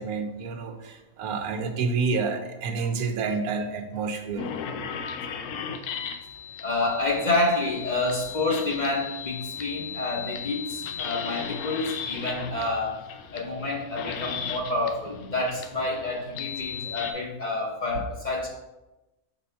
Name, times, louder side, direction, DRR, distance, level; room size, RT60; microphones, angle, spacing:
voice 1, 0.0-4.5, right 4 dB, 90° right, 6 dB, 1.2 m, -29 dB
sound 1, 4.4-17.1, left 7 dB, 85° left, 1.1 m, -36 dB
voice 2, 6.6-13.0 13.3-18.5, left 2 dB, 35° left, -2 dB, 0.8 m, -28 dB
4.1 x 4.1 x 5.5 m, 1.0 s
omnidirectional pair, 1.5 m